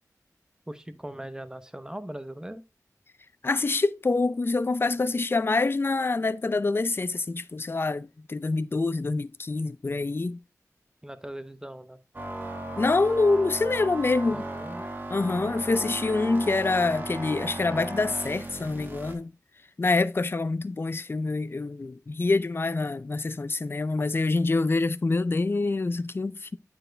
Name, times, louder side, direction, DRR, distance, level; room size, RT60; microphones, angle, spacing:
voice 1, 0.7-2.6 11.0-12.0 14.3-14.8, right 1 dB, 10° right, 0.9 m, -39 dB
voice 2, 3.4-10.4 12.8-14.5 15.1-19.3 19.8-26.6, left 3 dB, 40° left, 0.4 m, -26 dB
sound 1, 12.1-19.1, right 1 dB, 30° right, 1.7 m, -36 dB
8.8 x 4.6 x 3.2 m
cardioid pair, 50°, 6 cm